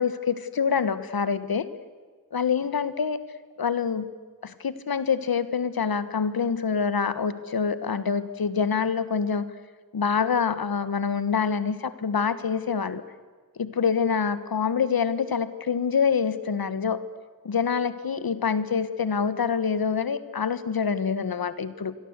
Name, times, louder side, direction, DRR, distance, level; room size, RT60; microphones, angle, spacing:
voice 1, 0.0-1.7 2.3-3.2 3.6-4.1 4.4-9.5 9.9-13.0 13.6-17.0 17.4-21.9, left 6 dB, 90° left, 13 dB, 1.4 m, -26 dB
28.0 x 23.0 x 8.2 m, 1.5 s
wide cardioid pair, 100°, 35 cm